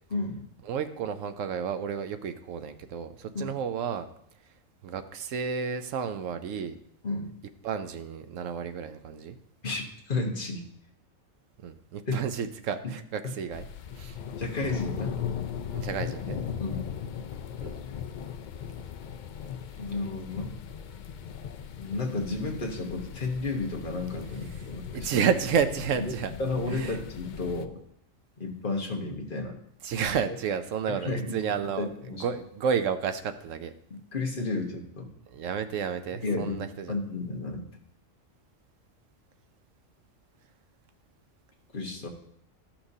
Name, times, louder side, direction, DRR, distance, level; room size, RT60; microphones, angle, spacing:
voice 1, 0.6-4.1 4.8-6.8 7.6-9.4 11.6-13.6 13.9-14.2 15.7-16.4 17.6-17.8 24.9-26.3 26.7-27.0 29.8-33.7 35.3-37.0, right 7 dB, 80° right, 10 dB, 1.0 m, -31 dB
voice 2, 9.6-10.7 12.1-12.2 12.8-12.9 13.2-13.3 14.4-15.2 16.6-16.8 19.8-20.5 21.8-25.1 26.0-26.1 26.4-27.8 28.4-29.6 30.9-31.4 31.8-32.2 33.9-35.1 36.2-36.6 36.9-37.7 41.7-42.1, left 3 dB, 45° left, 0 dB, 1.4 m, -32 dB
sound 1, 13.5-27.7, left 8 dB, 75° left, 0.4 m, -38 dB
14.0 x 5.9 x 2.7 m, 0.71 s
omnidirectional pair, 1.3 m